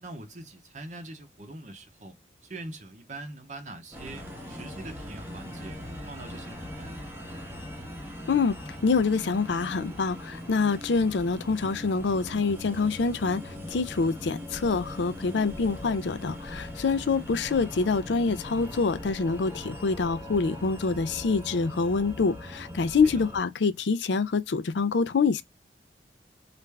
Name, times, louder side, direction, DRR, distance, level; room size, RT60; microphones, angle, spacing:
voice 1, 0.0-2.2 2.4-5.8 6.1-7.1 23.0-23.1, right 2 dB, 40° right, 0.6 m, -43 dB
sound 1, 3.9-23.4, left 1 dB, 15° right, 0.8 m, -40 dB
voice 2, 8.3-25.4, left 4 dB, 85° left, 0.5 m, -26 dB
3.3 x 2.5 x 3.3 m
head